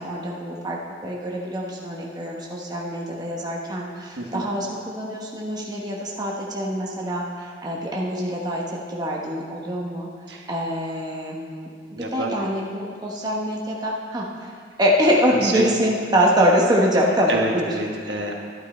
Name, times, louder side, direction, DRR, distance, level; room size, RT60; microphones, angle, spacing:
voice 1, 0.0-10.1 10.5-14.5 14.8-17.7, equal, 20° right, -3 dB, 1.1 m, -24 dB
voice 2, 11.9-12.4 15.3-15.8 17.3-18.3, right 2 dB, 60° right, 0 dB, 1.5 m, -27 dB
12.0 x 11.5 x 4.4 m, 2.1 s
head